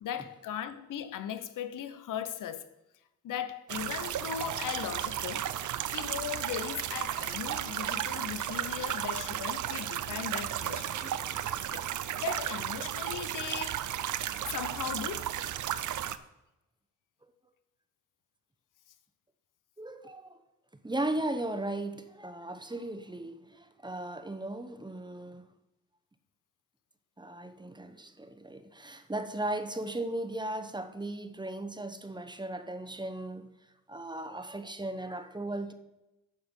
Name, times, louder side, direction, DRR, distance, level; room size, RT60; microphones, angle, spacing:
voice 1, 0.0-2.7 3.2-5.5 5.9-11.1 11.7-11.9 12.2-14.2 14.5-15.4, left 9 dB, 70° left, 0.8 m, -38 dB
sound 1, 3.7-16.2, right 11 dB, 65° right, 0.6 m, -34 dB
voice 2, 10.9-11.5 17.2-17.3 19.8-20.4 20.8-25.5 27.2-33.5 33.9-35.7, right 1 dB, 15° right, 0.9 m, -37 dB
12.0 x 4.5 x 5.3 m
cardioid pair, 70°, 33 cm